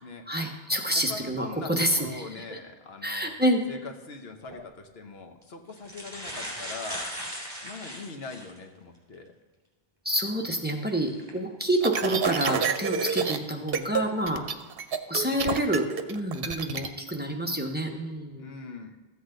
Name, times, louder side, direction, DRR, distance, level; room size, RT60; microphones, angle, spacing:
voice 1, 0.3-2.2 2.5-2.6 3.0-3.6 10.0-14.4 15.1-18.4, right 1 dB, 10° right, 2 dB, 1.0 m, -28 dB
voice 2, 0.9-3.3 3.7-7.1 7.6-9.3 15.2-15.8 18.4-18.9, left 4 dB, 80° left, 5 dB, 1.2 m, -42 dB
sound 1, 4.4-4.6 5.4-5.5 5.8-8.6 9.1-9.2 11.1-11.3 11.9-12.2, equal, 30° right, 3.1 m, -38 dB
sound 2, 11.8-13.4 13.7-14.0 14.3-16.9, right 6 dB, 70° right, 0.9 m, -28 dB
14.0 x 8.1 x 3.9 m, 1.3 s
omnidirectional pair, 1.0 m